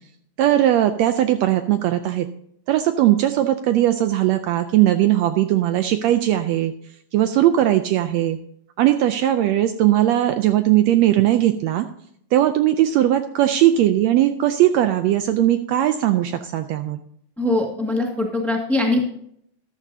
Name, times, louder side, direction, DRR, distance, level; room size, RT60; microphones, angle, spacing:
voice 1, 0.4-2.3 2.7-6.7 7.1-8.4 8.8-11.9 12.3-17.0, right 13 dB, 80° right, 9 dB, 1.6 m, -19 dB
voice 2, 17.4-19.0, left 2 dB, ahead, 1 dB, 1.1 m, -22 dB
14.0 x 11.5 x 2.7 m, 0.68 s
omnidirectional pair, 3.4 m